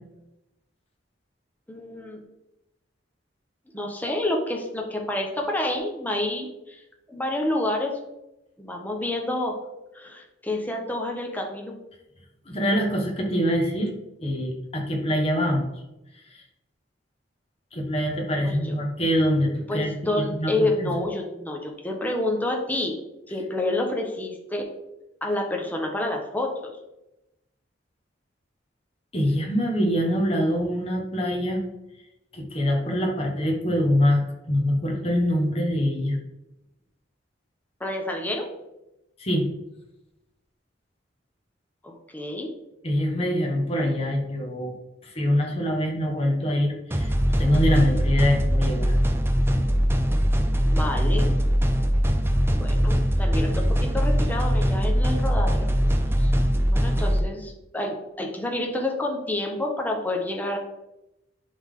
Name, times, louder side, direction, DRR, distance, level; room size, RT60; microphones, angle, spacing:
voice 1, 1.7-2.2 3.7-7.9 8.6-9.6 9.9-11.7 18.4-18.8 19.7-22.9 23.3-24.7 25.2-26.7 37.8-38.5 41.8-42.5 50.7-51.3 52.5-55.7 56.2-56.3 56.7-60.6, left 1 dB, 10° left, 1 dB, 1.0 m, -29 dB
voice 2, 12.5-13.9 14.2-15.7 17.7-21.0 29.1-31.6 32.3-36.2 39.2-39.5 42.8-44.7 45.0-48.9, equal, 35° left, 1 dB, 1.4 m, -24 dB
sound 1, 46.9-57.2, equal, 15° right, 0.5 m, -22 dB
10.5 x 3.7 x 3.7 m, 0.93 s
head